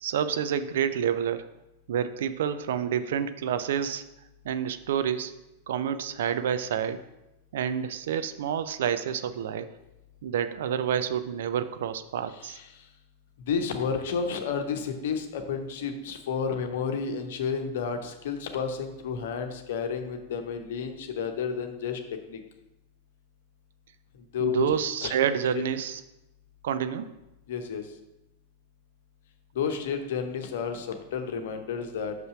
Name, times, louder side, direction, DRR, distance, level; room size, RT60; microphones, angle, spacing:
voice 1, 0.0-1.5 1.9-4.0 4.4-5.3 5.7-7.0 7.5-9.7 10.2-12.6 24.4-26.0 26.6-27.1, right 8 dB, 60° right, 11 dB, 0.4 m, -28 dB
voice 2, 13.5-22.0 22.3-22.4 24.3-24.7 25.0-25.1 25.5-25.6 27.5-27.8 29.5-32.1, left 6 dB, 55° left, 6 dB, 0.9 m, -31 dB
6.0 x 5.5 x 5.7 m, 0.94 s
figure-of-eight pair, 90°, 0 cm